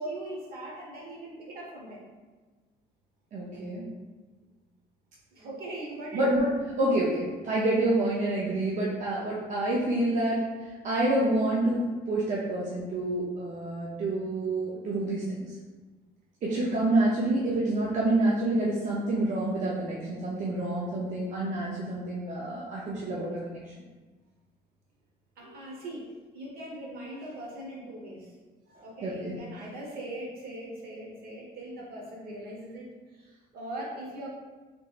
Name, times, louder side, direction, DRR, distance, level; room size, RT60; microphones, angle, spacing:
voice 1, 0.0-2.0 5.3-6.2 25.4-28.3 28.7-32.9 33.2-34.3, right 1 dB, 65° right, -3 dB, 1.1 m, -40 dB
voice 2, 3.3-3.9 6.1-10.4 10.8-15.5 16.4-23.6 29.0-29.4, right 1 dB, 45° right, -5 dB, 0.6 m, -28 dB
3.5 x 3.0 x 2.4 m, 1.3 s
cardioid pair, 110°, 17 cm